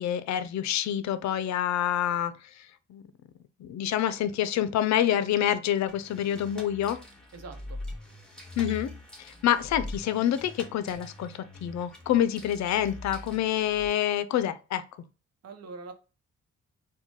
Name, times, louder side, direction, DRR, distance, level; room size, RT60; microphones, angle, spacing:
voice 1, 0.0-2.3 2.9-3.0 3.6-7.0 8.6-8.9 9.2-14.8, left 11 dB, 65° left, 0.5 m, -27 dB
sound 1, 5.9-13.9, left 1 dB, 5° left, 1.2 m, -43 dB
voice 2, 7.3-7.8 15.4-15.9, right 4 dB, 55° right, 0.8 m, -43 dB
4.4 x 2.2 x 2.9 m
cardioid pair, 90°, 30 cm